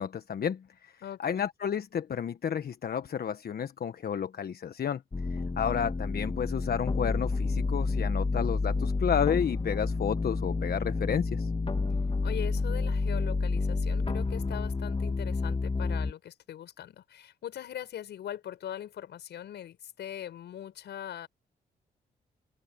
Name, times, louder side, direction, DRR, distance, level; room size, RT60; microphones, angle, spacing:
voice 1, 0.0-0.9 1.2-5.0 5.3-11.5, left 8 dB, 60° left, 1.3 m, -31 dB
voice 2, 1.0-1.3 12.2-21.3, left 10 dB, 80° left, 6.2 m, -41 dB
sound 1, 5.1-16.1, left 3 dB, 30° left, 2.5 m, -29 dB
open air
supercardioid pair, 55°, 18 cm